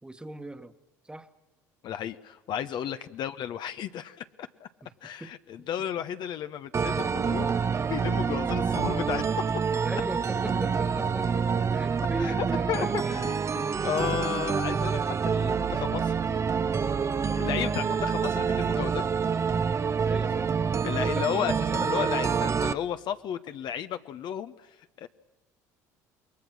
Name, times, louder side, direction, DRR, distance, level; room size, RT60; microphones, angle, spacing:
voice 1, 0.0-0.7 1.0-1.3 2.9-3.1 5.2-5.3 9.8-13.2 17.6-17.8 20.0-20.5 21.0-22.2, right 2 dB, 10° right, 10 dB, 1.5 m, -38 dB
voice 2, 1.8-4.7 5.0-7.5 7.9-9.3 12.2-16.2 17.4-19.1 20.8-25.1, left 9 dB, 55° left, 10 dB, 1.0 m, -33 dB
sound 1, 6.7-22.7, right 6 dB, 30° right, 0.9 m, -27 dB
28.0 x 21.5 x 6.3 m, 1.2 s
hypercardioid pair, 65°, 9 cm